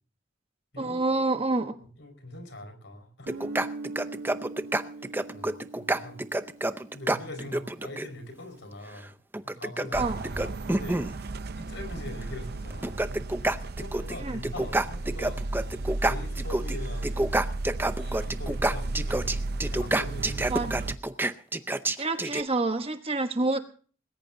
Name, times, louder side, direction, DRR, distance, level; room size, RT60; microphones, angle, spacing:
voice 1, 0.8-1.8 10.0-10.2 14.2-14.4 20.5-20.9 22.0-23.6, right 2 dB, 30° right, 7 dB, 1.1 m, -28 dB
voice 2, 2.0-3.3 5.0-5.1 5.3-6.3 6.9-9.1 9.4-11.0 11.5-13.0 13.7-15.5 16.1-17.3 18.0-19.3 19.7-20.5, left 1 dB, 65° left, 8 dB, 5.0 m, -42 dB
sound 1, 3.3-8.1 9.3-11.2 12.2-12.3 12.7-14.2 14.4-16.8 17.0-22.4, right 1 dB, 10° right, 0.6 m, -28 dB
Guitar, 3.3-7.8, right 3 dB, 85° right, 1.6 m, -41 dB
sound 2, 9.9-21.0, right 2 dB, 55° right, 0.7 m, -34 dB
20.0 x 17.5 x 2.7 m, 0.41 s
head